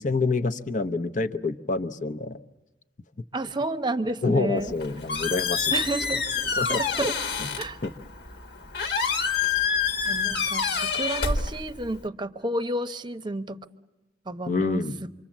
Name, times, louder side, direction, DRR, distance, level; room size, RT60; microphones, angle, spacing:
voice 1, 0.0-2.4 4.2-5.7 6.6-6.8 7.4-7.5 7.8-7.9 9.5-9.6 14.5-15.0, left 3 dB, 45° left, 10 dB, 0.8 m, -27 dB
voice 2, 3.3-4.7 5.7-6.2 6.7-7.2 7.6-7.8 10.0-13.6 14.3-14.8, right 1 dB, 25° right, 10 dB, 0.8 m, -30 dB
Squeak, 4.6-12.1, left 5 dB, 65° left, 1.5 m, -28 dB
27.0 x 24.5 x 7.3 m, 1.0 s
head